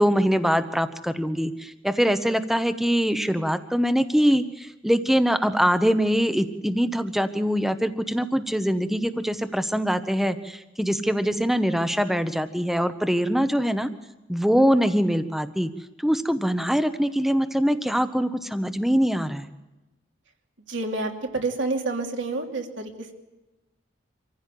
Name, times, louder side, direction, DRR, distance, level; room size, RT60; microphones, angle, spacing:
voice 1, 0.0-13.9 14.3-15.7 16.0-19.5, equal, ahead, 10 dB, 0.9 m, -23 dB
voice 2, 20.7-23.1, right 3 dB, 75° right, 3 dB, 2.8 m, -29 dB
25.5 x 15.5 x 8.5 m, 1.0 s
head